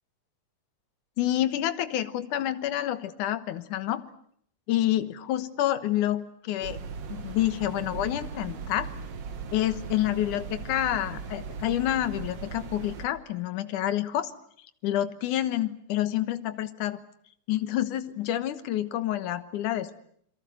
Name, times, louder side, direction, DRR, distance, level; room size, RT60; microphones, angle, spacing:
voice 1, 1.2-4.0 4.7-6.8 7.1-8.9 9.5-14.3 14.8-17.0 17.5-19.9, left 13 dB, 75° left, 12 dB, 2.7 m, -28 dB
sound 1, 6.6-13.1, right 6 dB, 55° right, 2.4 m, -38 dB
27.5 x 22.5 x 7.9 m, 0.66 s
omnidirectional pair, 3.7 m